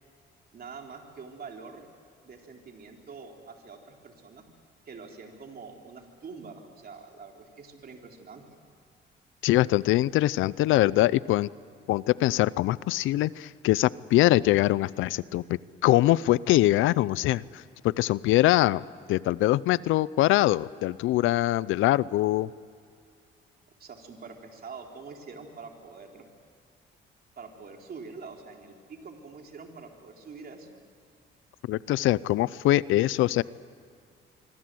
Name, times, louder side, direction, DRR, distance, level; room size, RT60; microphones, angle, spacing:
voice 1, 0.5-1.9 2.2-4.5 4.9-8.4 23.8-26.3 27.4-30.8, right 4 dB, 50° right, 2 dB, 3.9 m, -45 dB
voice 2, 9.4-11.5 11.9-18.8 19.1-22.5 31.7-33.4, left 16 dB, 90° left, 20 dB, 0.6 m, -23 dB
25.0 x 25.0 x 7.8 m, 2.4 s
cardioid pair, 90°, 20 cm